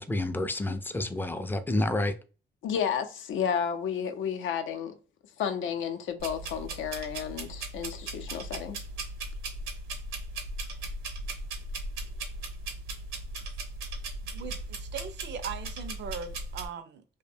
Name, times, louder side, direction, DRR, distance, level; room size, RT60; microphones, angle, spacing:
voice 1, 0.0-2.2, left 1 dB, 10° left, 0.3 m, -29 dB
voice 2, 2.6-4.9 5.4-8.8, left 8 dB, 75° left, 0.5 m, -32 dB
sound 1, 6.2-16.7, right 2 dB, 90° right, 0.8 m, -38 dB
voice 3, 14.2-17.0, right 6 dB, 60° right, 0.4 m, -40 dB
2.6 x 2.1 x 2.6 m
cardioid pair, 90°, 20 cm